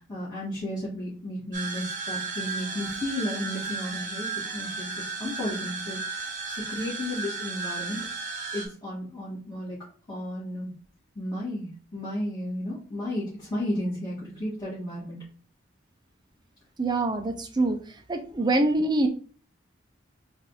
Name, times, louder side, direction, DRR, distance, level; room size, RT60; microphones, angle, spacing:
voice 1, 0.1-8.0 8.5-9.8 10.1-10.7 11.2-15.2, left 1 dB, 20° left, -12 dB, 1.9 m, -33 dB
sound 1, 1.5-8.7, right 4 dB, 40° right, 1.0 m, -34 dB
voice 2, 16.8-17.8 18.1-19.1, right 2 dB, 20° right, 6 dB, 0.6 m, -24 dB
4.0 x 2.6 x 4.0 m, 0.42 s
head